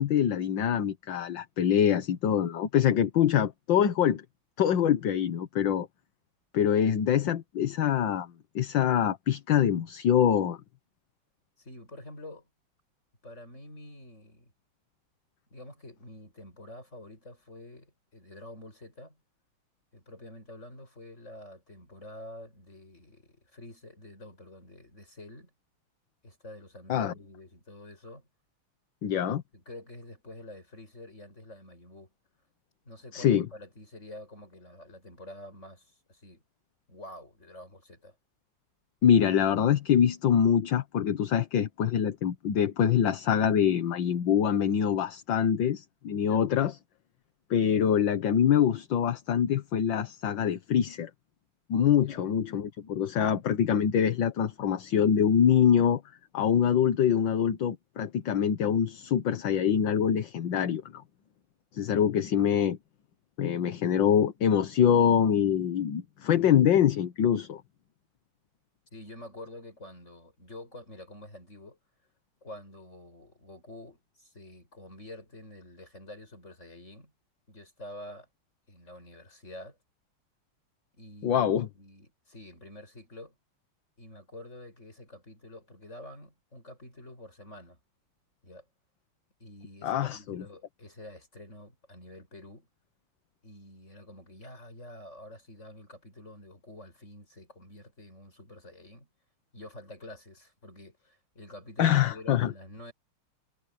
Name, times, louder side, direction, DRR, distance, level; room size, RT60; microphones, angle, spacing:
voice 1, 0.0-4.2 4.6-5.9 6.5-8.3 8.6-10.6 26.9-27.1 29.0-29.4 33.1-33.5 39.0-46.7 47.5-51.1 51.7-56.0 56.3-61.0 61.7-62.8 63.4-67.6 81.2-81.7 89.8-90.4 101.8-102.5, left 8 dB, 60° left, 1.8 m, -24 dB
voice 2, 11.6-12.5 13.2-14.5 15.5-19.2 19.9-25.5 26.2-28.3 29.5-32.1 32.8-36.4 36.9-38.1 46.2-46.5 52.0-52.2 68.9-71.8 72.4-77.1 77.5-78.3 78.7-79.8 80.9-83.3 84.0-87.8 88.4-88.7 89.4-92.7 93.4-99.1 99.5-102.9, left 1 dB, 30° left, 8.5 m, -48 dB
omnidirectional pair, 2.4 m